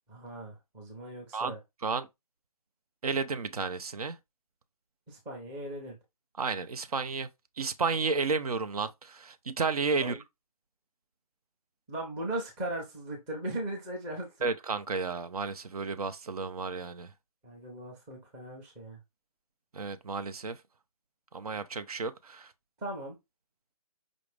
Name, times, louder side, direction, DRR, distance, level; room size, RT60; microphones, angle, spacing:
voice 1, 0.1-1.6 5.1-6.0 10.0-10.2 11.9-14.5 17.4-19.0 22.8-23.2, right 1 dB, 10° right, 0.6 m, -38 dB
voice 2, 3.0-4.2 6.4-7.3 7.6-10.2 14.4-17.1 19.7-20.6 21.3-22.5, right 4 dB, 70° right, 0.6 m, -32 dB
5.1 x 2.5 x 3.3 m
hypercardioid pair, 165°, 20 cm